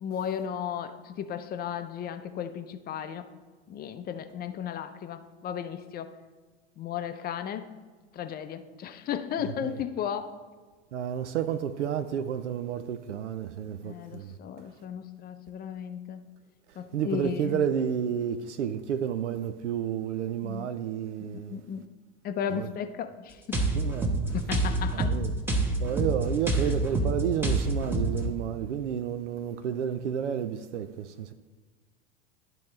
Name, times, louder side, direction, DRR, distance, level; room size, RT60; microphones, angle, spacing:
voice 1, 0.0-3.3 3.7-6.1 6.8-7.7 8.1-10.3 13.8-16.2 16.8-17.6 20.4-20.7 21.3-21.8 22.2-23.6 24.3-25.2 26.6-26.7, left 8 dB, 25° left, 0.5 m, -35 dB
voice 2, 10.9-14.3 16.9-21.6 22.5-22.7 23.7-24.2 24.9-25.3 25.8-31.3, right 9 dB, 80° right, 0.5 m, -31 dB
sound 1, 23.5-28.3, right 2 dB, 5° right, 1.1 m, -27 dB
11.5 x 4.5 x 3.2 m
hypercardioid pair, 85°, 35 cm